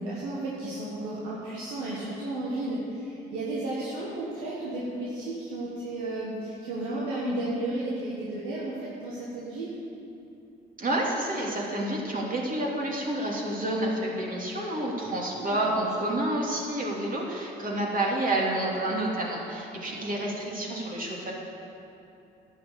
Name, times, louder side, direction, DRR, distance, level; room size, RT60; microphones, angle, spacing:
voice 1, 0.0-9.8 15.3-16.1 19.8-20.3, right 2 dB, 90° right, -6 dB, 1.6 m, -33 dB
voice 2, 10.8-21.3, right 1 dB, 40° right, -3 dB, 2.9 m, -29 dB
10.5 x 7.4 x 8.1 m, 2.7 s
supercardioid pair, 55°, 21 cm